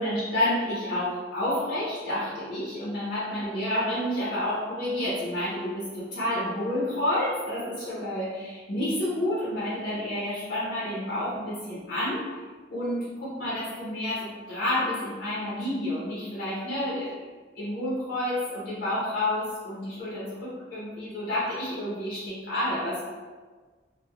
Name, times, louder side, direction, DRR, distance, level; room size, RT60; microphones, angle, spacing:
voice 1, 0.0-12.2 12.7-17.2 17.5-23.1, left 1 dB, 80° left, -8 dB, 0.8 m, -29 dB
3.3 x 2.1 x 2.2 m, 1.4 s
head